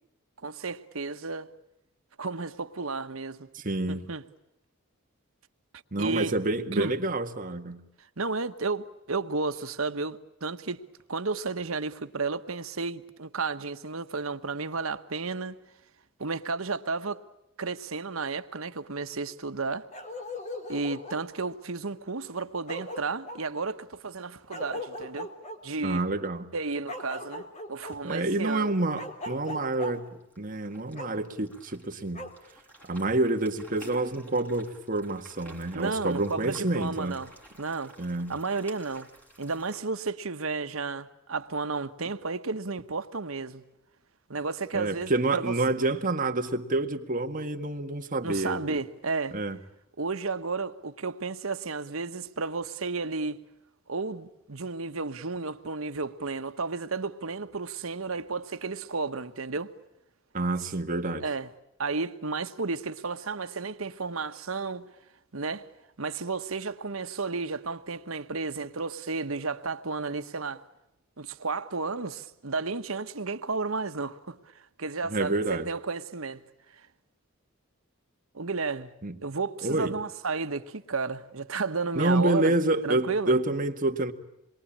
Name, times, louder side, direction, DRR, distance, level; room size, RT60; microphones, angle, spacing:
voice 1, 0.4-1.5 2.2-3.5 3.9-4.2 6.0-6.3 6.7-6.9 8.2-10.8 11.1-15.6 16.2-17.3 17.6-19.9 20.7-25.3 25.6-26.0 26.5-28.7 35.7-37.3 37.6-37.9 38.3-39.1 39.4-43.6 44.3-45.5 48.2-49.4 50.0-53.4 53.9-59.7 61.2-61.5 61.8-64.9 65.3-65.7 66.0-70.7 71.2-76.4 76.7-76.9 78.3-78.9 79.2-82.5 82.8-83.4, right 4 dB, 85° right, 1.3 m, -32 dB
voice 2, 3.5-4.0 5.9-7.8 25.8-26.5 28.0-30.1 30.4-32.3 32.8-37.2 38.0-38.4 44.7-48.8 49.3-49.6 60.3-61.2 75.1-75.7 79.0-79.2 79.6-79.9 82.0-84.1, right 2 dB, 40° right, 1.9 m, -28 dB
Bark, 19.9-21.3 22.3-22.4 22.7-23.4 24.5-25.6 26.9-27.9 29.0-29.9 30.9-31.1 32.1-32.3, left 1 dB, 35° left, 3.6 m, -38 dB
sound 1, 27.8-39.8, right 1 dB, 10° left, 6.3 m, -53 dB
27.5 x 22.5 x 8.8 m
head